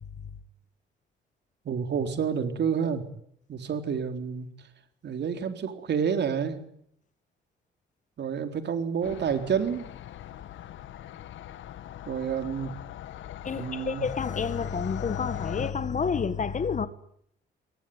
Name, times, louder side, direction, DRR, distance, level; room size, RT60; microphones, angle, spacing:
voice 1, 1.7-3.0 3.5-4.5 5.0-6.6 8.2-9.9 12.1-12.7 13.5-14.0, right 7 dB, 60° right, 4.0 m, -29 dB
sound 1, 9.0-15.7, left 12 dB, 75° left, 1.5 m, -41 dB
voice 2, 13.4-16.9, left 5 dB, 40° left, 1.8 m, -29 dB
22.5 x 19.0 x 9.7 m
cardioid pair, 90°, 20 cm